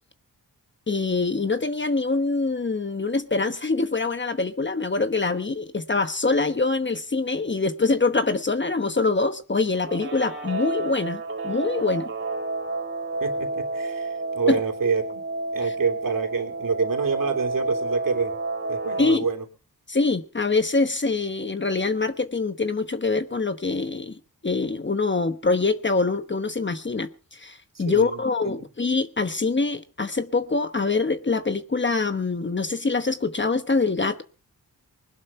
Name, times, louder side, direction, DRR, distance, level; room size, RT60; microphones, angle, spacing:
voice 1, 0.9-12.1 14.5-14.6 15.6-15.7 19.0-19.2 19.9-34.2, left 3 dB, 30° left, 1.1 m, -24 dB
Guitar, 9.7-19.2, right 2 dB, 30° right, 2.6 m, -30 dB
voice 2, 13.2-14.1 14.3-15.2 15.5-18.3 18.7-19.4 27.8-28.2, right 5 dB, 60° right, 3.4 m, -26 dB
20.5 x 11.5 x 4.4 m
wide cardioid pair, 80°, 37 cm